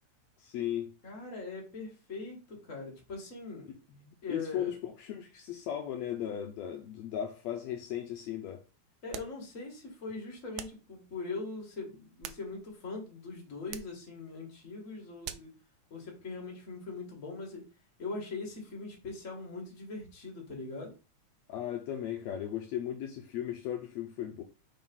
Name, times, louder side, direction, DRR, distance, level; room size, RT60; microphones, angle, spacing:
voice 1, 0.4-0.9 4.0-8.6 21.5-24.4, left 10 dB, 75° left, 1.8 m, -36 dB
voice 2, 1.0-3.8 4.2-4.7 9.0-15.5 15.9-17.6 18.0-20.9, left 3 dB, 30° left, 2.0 m, -41 dB
sound 1, 9.1-9.4 10.6-10.9 11.9-12.8 13.7-14.0 15.2-15.6, right 11 dB, 85° right, 2.0 m, -44 dB
4.8 x 3.9 x 5.4 m
omnidirectional pair, 3.3 m